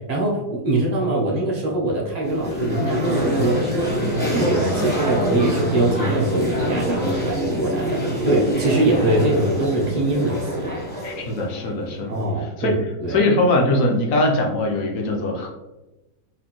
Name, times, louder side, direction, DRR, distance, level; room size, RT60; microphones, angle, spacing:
voice 1, 0.0-4.0 4.3-10.8 12.1-13.2, right 1 dB, 70° right, -3 dB, 0.3 m, -23 dB
sound 1, 2.2-12.3, equal, 10° left, 0.5 m, -25 dB
voice 2, 11.0-12.1 12.6-12.7 13.1-15.5, left 2 dB, 65° left, 1 dB, 0.9 m, -21 dB
4.2 x 2.6 x 2.9 m, 1.0 s
omnidirectional pair, 1.9 m